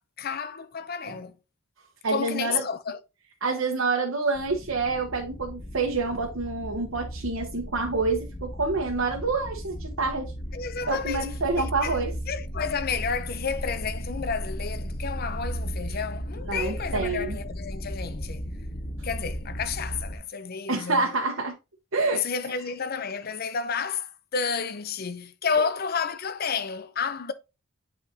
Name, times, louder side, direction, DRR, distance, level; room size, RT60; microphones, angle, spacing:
voice 1, 0.0-1.4 2.1-3.0 10.5-11.3 11.6-12.0 12.3-18.5 19.0-21.1 22.1-27.3, left 6 dB, 50° left, 0.6 m, -31 dB
voice 2, 2.0-2.6 3.4-10.3 10.9-12.1 16.5-17.4 20.7-21.5 21.9-22.2, right 3 dB, 85° right, 1.1 m, -27 dB
sound 1, 4.4-20.2, equal, 30° left, 0.9 m, -35 dB
8.4 x 4.2 x 2.8 m
head